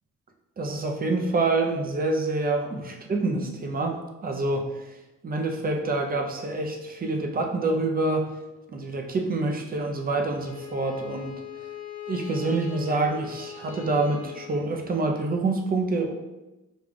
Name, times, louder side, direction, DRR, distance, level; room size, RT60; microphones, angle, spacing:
voice 1, 0.6-5.0 5.2-8.3 8.7-11.4 12.1-16.1, right 2 dB, 30° right, 3 dB, 0.6 m, -27 dB
Bowed string instrument, 10.3-15.3, left 8 dB, 80° left, 1.0 m, -40 dB
5.0 x 2.4 x 3.6 m, 1.0 s
cardioid pair, 90°, 30 cm